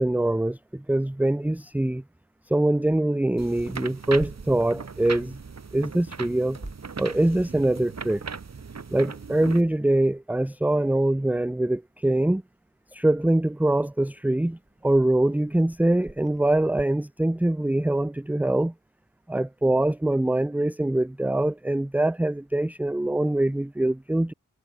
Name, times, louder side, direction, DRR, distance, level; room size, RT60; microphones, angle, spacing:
voice 1, 0.0-2.0 2.5-5.4 5.7-6.6 7.0-8.2 8.9-12.4 12.9-18.7 19.3-24.3, right 1 dB, 5° right, 0.6 m, -23 dB
sound 1, 3.4-9.6, right 5 dB, 55° right, 1.8 m, -38 dB
Clock, 10.0-16.8, right 2 dB, 20° right, 5.6 m, -52 dB
cardioid pair, 45°, 32 cm